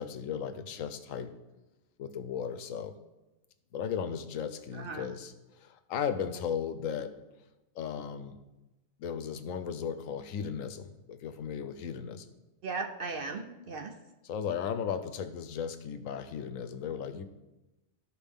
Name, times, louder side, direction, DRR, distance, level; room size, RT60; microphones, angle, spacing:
voice 1, 0.0-1.3 2.0-3.0 3.7-7.1 7.8-8.4 9.0-12.3 14.2-17.2, left 7 dB, 85° left, 10 dB, 1.0 m, -36 dB
voice 2, 4.7-5.1 12.6-13.9, right 4 dB, 55° right, 3 dB, 0.7 m, -37 dB
13.0 x 4.7 x 3.6 m, 1.0 s
omnidirectional pair, 1.3 m